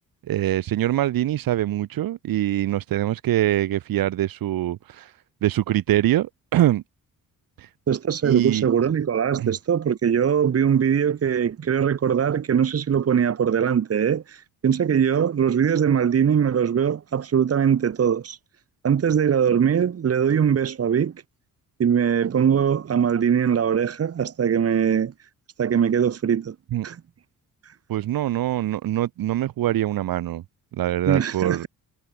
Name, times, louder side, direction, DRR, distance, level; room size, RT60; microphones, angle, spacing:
voice 1, 0.3-5.1 5.4-6.8 7.6-7.7 8.2-8.7 9.4-9.5 26.7-26.9 27.9-30.4 30.7-31.7, right 13 dB, 90° right, 5.3 m, -23 dB
voice 2, 7.9-18.4 18.8-21.1 21.8-25.1 25.6-26.5 26.8-27.0 31.1-31.7, right 8 dB, 45° right, 7.9 m, -21 dB
cardioid pair, 160°, 34 cm